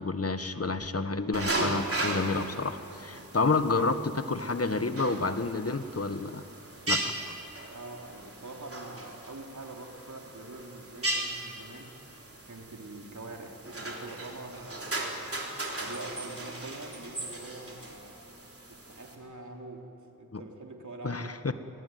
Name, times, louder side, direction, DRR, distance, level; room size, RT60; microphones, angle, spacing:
voice 1, 0.0-6.4 6.9-7.0 20.3-20.4 21.0-21.5, left 3 dB, 45° left, 10 dB, 1.3 m, -29 dB
sound 1, 1.3-19.2, right 2 dB, 40° right, 3.8 m, -37 dB
voice 2, 7.7-12.0 12.5-15.3 15.8-18.3 18.7-19.9 20.2-21.4, right 2 dB, 60° right, 1 dB, 3.4 m, -44 dB
23.5 x 18.5 x 9.4 m, 2.8 s
cardioid pair, 45°, 34 cm